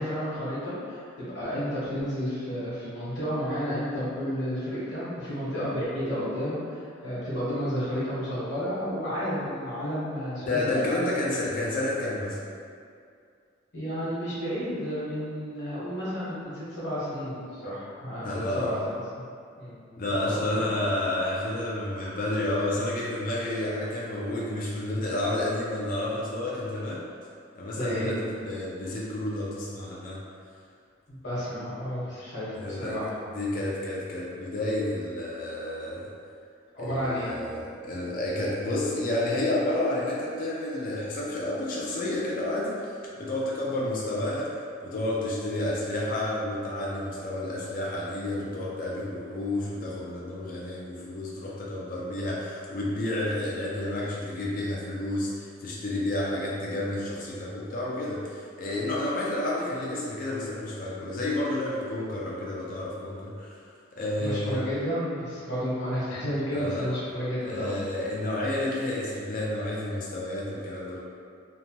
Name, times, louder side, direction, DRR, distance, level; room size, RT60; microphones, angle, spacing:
voice 1, 0.0-11.1 13.7-18.3 18.5-18.7 19.1-19.2 19.6-19.7 20.2-20.7 27.8-28.1 31.1-33.1 36.7-37.3 43.8-43.9 64.1-67.8, equal, 60° left, -10 dB, 1.1 m, -31 dB
voice 2, 10.4-12.4 18.2-18.8 20.0-27.0 27.5-30.2 32.5-33.0 33.3-36.1 36.8-42.9 43.2-44.5 44.8-63.6 63.9-64.6 66.5-66.9 67.4-71.0, left 1 dB, 45° left, -5 dB, 0.4 m, -30 dB
2.8 x 2.1 x 2.8 m, 2.3 s
head